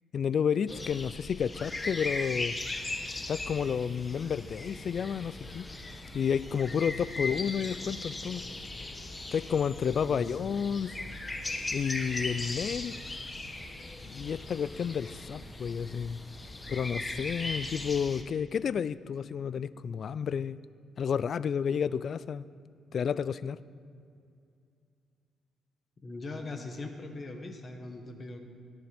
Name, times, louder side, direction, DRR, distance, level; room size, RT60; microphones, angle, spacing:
voice 1, 0.1-2.6 3.3-5.7 6.1-8.4 9.3-11.0 11.7-13.0 14.0-16.2 16.7-20.6 21.0-22.5 22.9-23.6, left 7 dB, 55° left, 17 dB, 0.3 m, -31 dB
sound 1, 0.7-18.2, left 2 dB, 20° left, 1.0 m, -38 dB
voice 2, 10.0-10.4 26.0-28.4, left 2 dB, 35° left, 4 dB, 1.5 m, -41 dB
18.0 x 10.5 x 3.5 m, 2.4 s
cardioid pair, 90°, 0 cm